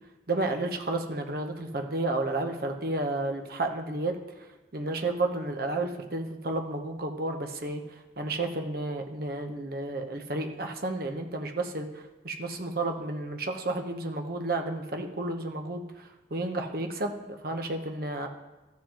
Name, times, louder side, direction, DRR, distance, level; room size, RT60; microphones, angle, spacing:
voice 1, 0.3-4.2 4.7-18.3, right 2 dB, 55° right, 3 dB, 0.9 m, -32 dB
13.5 x 7.5 x 2.9 m, 1.1 s
head